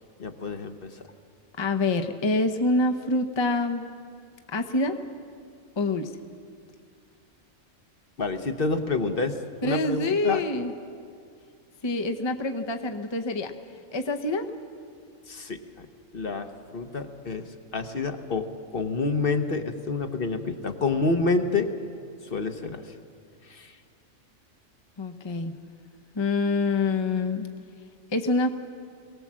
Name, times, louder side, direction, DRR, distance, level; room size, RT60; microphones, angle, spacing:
voice 1, 0.2-0.9 8.2-9.4 9.6-10.4 15.3-15.9 16.1-17.4 17.7-21.7 22.2-22.8 23.5-23.7, left 3 dB, 45° left, 7 dB, 1.1 m, -28 dB
voice 2, 1.6-3.9 4.5-5.0 5.8-6.1 9.6-10.7 11.8-13.5 13.9-14.5 25.0-25.5 26.1-27.5 28.1-28.5, left 2 dB, 25° left, 5 dB, 0.7 m, -26 dB
22.5 x 18.0 x 7.5 m, 2.3 s
omnidirectional pair, 1.4 m